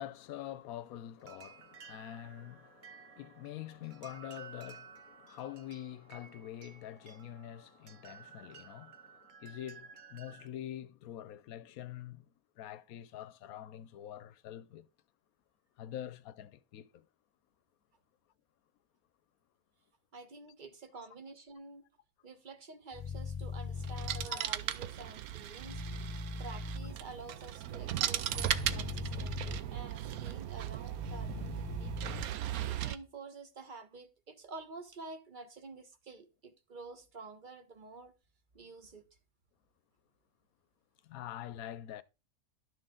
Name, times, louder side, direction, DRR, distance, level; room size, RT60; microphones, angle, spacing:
voice 1, 0.0-14.9 15.8-17.1 24.2-24.5 41.0-42.0, left 11 dB, 75° left, 1.1 m, -45 dB
sound 1, 1.2-10.5, right 6 dB, 60° right, 0.5 m, -55 dB
voice 2, 20.1-21.8 22.2-25.8 26.4-32.2 32.7-38.1 38.5-39.0, right 3 dB, 35° right, 1.2 m, -49 dB
sound 2, 22.9-24.3 25.6-26.9 28.3-29.6 30.9-32.2, left 3 dB, 30° left, 0.6 m, -40 dB
sound 3, 23.7-33.0, right 11 dB, 80° right, 1.1 m, -37 dB
12.0 x 6.4 x 3.7 m
omnidirectional pair, 1.5 m